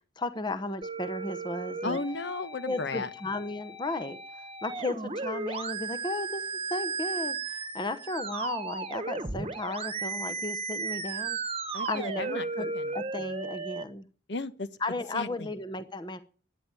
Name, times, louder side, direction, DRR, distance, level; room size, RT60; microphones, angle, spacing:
voice 1, 0.2-2.0 2.7-4.2 4.6-11.4 11.8-14.1 14.8-16.2, left 2 dB, 25° left, 0.9 m, -35 dB
sound 1, 0.8-13.8, right 4 dB, 30° right, 1.3 m, -35 dB
voice 2, 1.8-3.1 11.7-12.9 14.3-14.7 15.1-15.5, left 3 dB, 65° left, 1.1 m, -34 dB
13.0 x 10.0 x 9.8 m
head